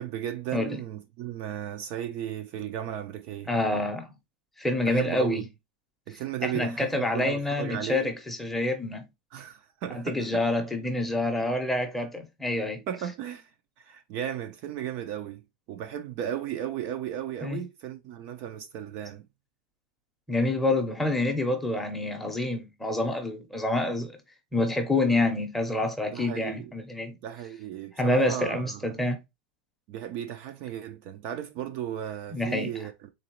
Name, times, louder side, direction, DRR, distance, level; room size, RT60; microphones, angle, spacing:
voice 1, 0.0-3.5 4.9-5.4 6.1-8.1 9.3-10.4 12.9-13.5 13.8-15.4 15.7-19.3 26.1-26.7 27.2-29.0 29.9-33.1, right 10 dB, 40° right, 0.5 m, -35 dB
voice 2, 3.5-4.1 4.6-5.5 6.4-9.1 9.9-12.8 17.4-17.6 20.3-24.1 24.5-27.1 28.0-29.2 32.3-32.7, left 2 dB, 5° left, 0.7 m, -27 dB
3.9 x 3.0 x 2.9 m
supercardioid pair, 160°, 5 cm